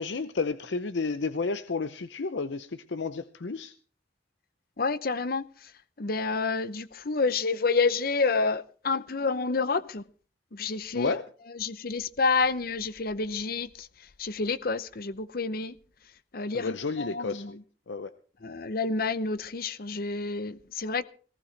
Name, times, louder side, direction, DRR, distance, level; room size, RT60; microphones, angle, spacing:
voice 1, 0.0-3.7 10.9-11.2 16.5-17.6 17.9-18.1, left 4 dB, 90° left, 0.7 m, -31 dB
voice 2, 4.8-5.7 6.0-10.0 10.5-11.1 11.5-13.9 14.2-15.8 16.3-17.6 18.4-21.0, left 4 dB, 55° left, 0.8 m, -29 dB
19.0 x 15.5 x 3.3 m
head